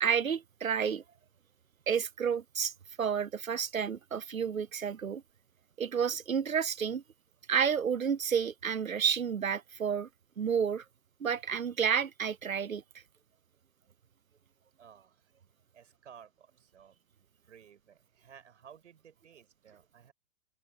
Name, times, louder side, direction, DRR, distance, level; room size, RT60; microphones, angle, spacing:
voice 1, 0.0-1.0 1.9-2.7 3.0-5.2 5.8-7.0 7.5-10.1 10.4-10.8 11.2-12.8, right 7 dB, 80° right, 0.8 m, -30 dB
voice 2, 14.8-15.3 15.7-20.1, right 8 dB, 60° right, 6.5 m, -56 dB
open air
figure-of-eight pair, 110°, 40 cm